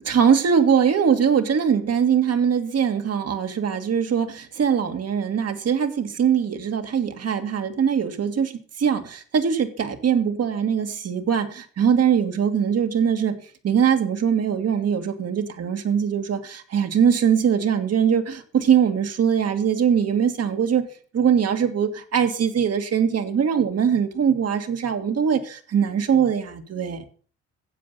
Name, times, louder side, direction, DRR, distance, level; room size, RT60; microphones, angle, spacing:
voice 1, 0.0-13.4 13.6-20.8 21.1-27.0, right 7 dB, 55° right, 7 dB, 1.9 m, -22 dB
10.0 x 7.8 x 6.7 m, 0.43 s
cardioid pair, 90°, 30 cm